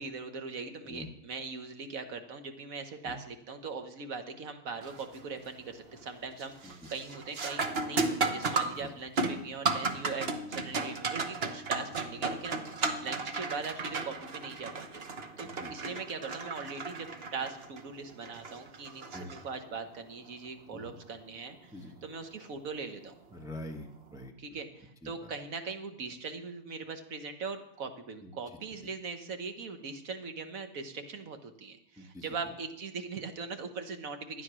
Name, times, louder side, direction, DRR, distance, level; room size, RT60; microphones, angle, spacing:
voice 1, 0.0-12.6 13.0-15.0 15.4-23.1 24.4-34.4, right 4 dB, 65° right, 7 dB, 1.6 m, -40 dB
sound 1, 4.8-5.2 5.6-6.0 6.4-19.9 22.4-22.5 23.3-23.6, right 3 dB, 45° right, 1.2 m, -34 dB
voice 2, 23.3-24.3 25.0-25.1 28.2-28.3 32.0-32.2, left 1 dB, 5° right, 2 dB, 1.0 m, -44 dB
13.0 x 9.7 x 6.2 m, 0.75 s
omnidirectional pair, 1.6 m